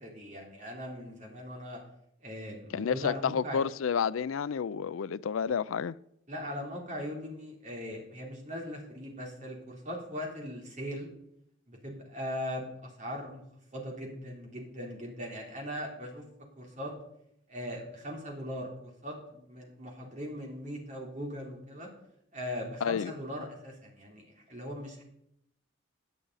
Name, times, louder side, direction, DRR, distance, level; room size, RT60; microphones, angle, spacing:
voice 1, 0.0-1.8 2.2-3.6 6.3-11.1 11.7-13.4 13.7-16.2 16.6-16.9 17.5-21.9 22.3-25.0, equal, 35° right, 3.5 m, -40 dB
voice 2, 2.7-6.0 22.8-23.1, left 7 dB, 80° left, 0.4 m, -30 dB
17.5 x 9.9 x 4.1 m
head